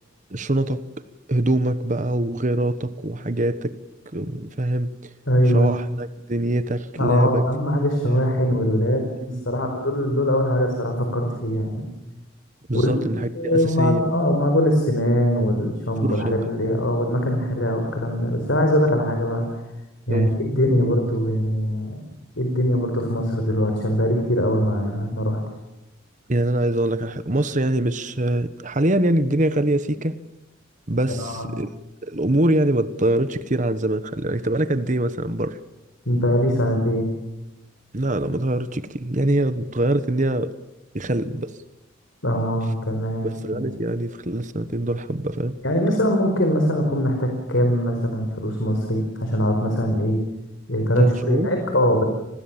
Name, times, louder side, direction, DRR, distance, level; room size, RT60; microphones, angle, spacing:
voice 1, 0.3-0.8 1.3-3.7 4.1-5.1 5.5-7.4 8.1-8.3 9.2-9.6 12.7-14.1 16.0-16.4 16.6-16.7 20.1-20.3 26.3-30.1 30.9-31.7 32.0-35.6 37.9-40.5 40.9-41.5 43.2-45.6 51.0-51.5, right 1 dB, 40° right, 12 dB, 1.2 m, -24 dB
voice 2, 5.3-5.7 7.0-9.0 9.5-11.9 12.7-12.9 13.3-19.5 20.1-22.0 22.4-25.4 31.2-31.5 36.1-37.1 42.2-43.6 45.6-50.2 50.7-52.0, equal, 70° left, 3 dB, 4.6 m, -22 dB
30.0 x 21.0 x 7.4 m, 0.95 s
head